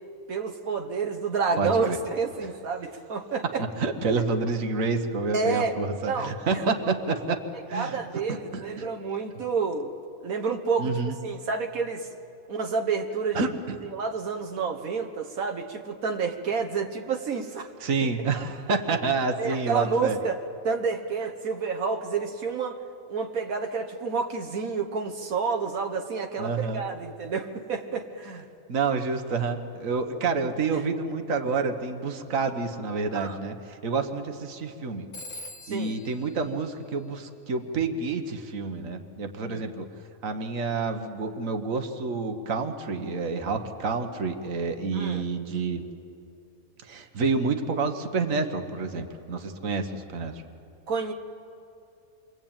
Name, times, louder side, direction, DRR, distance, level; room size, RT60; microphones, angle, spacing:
voice 1, 0.3-3.6 5.3-5.8 6.1-6.6 7.7-9.9 10.2-12.1 12.5-13.5 13.9-17.7 19.4-22.8 23.1-28.5 33.1-33.4 35.6-35.9 39.5-39.6 44.9-45.2 50.9-51.1, right 5 dB, 90° right, 4 dB, 1.7 m, -29 dB
voice 2, 1.6-2.0 3.8-7.4 7.7-7.9 8.3-8.9 10.8-11.2 13.3-13.8 17.8-20.2 26.4-26.8 28.7-35.1 35.7-39.9 40.2-45.8 46.8-50.4, right 4 dB, 70° right, 6 dB, 1.7 m, -28 dB
Telephone, 35.1-37.6, left 1 dB, 60° left, 1.6 m, -45 dB
28.5 x 23.5 x 8.9 m, 2.7 s
omnidirectional pair, 1.4 m